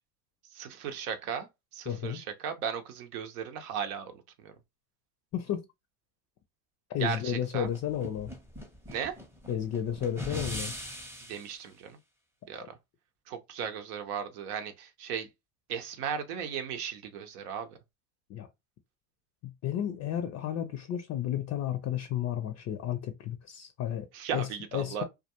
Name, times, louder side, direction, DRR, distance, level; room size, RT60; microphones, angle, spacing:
voice 1, 0.5-1.5 1.7-4.1 4.4-4.5 7.0-7.7 8.9-9.2 11.3-12.0 12.5-12.6 13.3-15.3 15.7-17.8 24.1-25.0, right 7 dB, 80° right, 0.7 m, -36 dB
voice 2, 1.9-2.2 5.3-5.7 6.9-8.3 9.5-10.7 12.6-12.7 18.3-18.5 19.4-25.0, left 10 dB, 35° left, 0.4 m, -33 dB
sound 1, 7.6-11.5, equal, 5° right, 0.6 m, -40 dB
2.3 x 2.2 x 2.8 m
hypercardioid pair, 80°, 44 cm